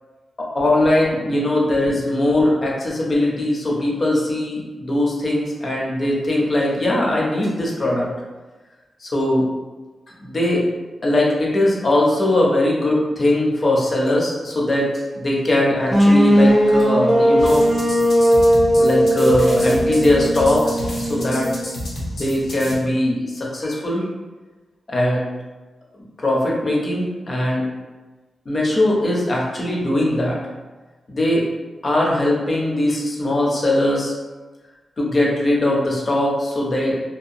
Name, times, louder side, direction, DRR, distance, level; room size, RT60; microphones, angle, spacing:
voice 1, 0.4-8.1 9.0-9.5 10.2-10.6 11.0-14.9 15.1-17.7 18.8-21.5 22.0-24.1 24.9-25.3 26.2-27.7 28.5-30.4 31.1-31.5 31.8-34.1 35.0-37.0, left 1 dB, 40° left, -3 dB, 0.6 m, -20 dB
sound 1, 15.9-21.8, equal, 15° right, 0.5 m, -17 dB
sound 2, 17.4-22.8, equal, 80° left, 0.7 m, -31 dB
2.8 x 2.2 x 2.5 m, 1.2 s
wide cardioid pair, 115°, 0 cm